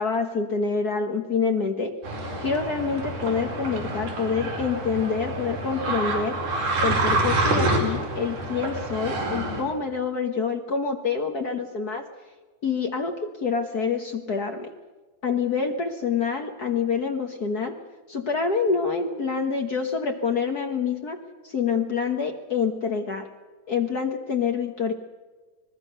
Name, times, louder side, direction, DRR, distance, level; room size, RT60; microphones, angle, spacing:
voice 1, 0.0-2.0 2.4-6.4 6.8-12.1 12.6-14.7 15.2-17.7 18.1-21.2 21.4-23.3 23.7-24.9, left 5 dB, 50° left, 4 dB, 1.1 m, -26 dB
sound 1, 2.0-9.6, right 2 dB, 80° right, 6.4 m, -27 dB
26.0 x 20.5 x 6.7 m, 1.3 s
omnidirectional pair, 3.6 m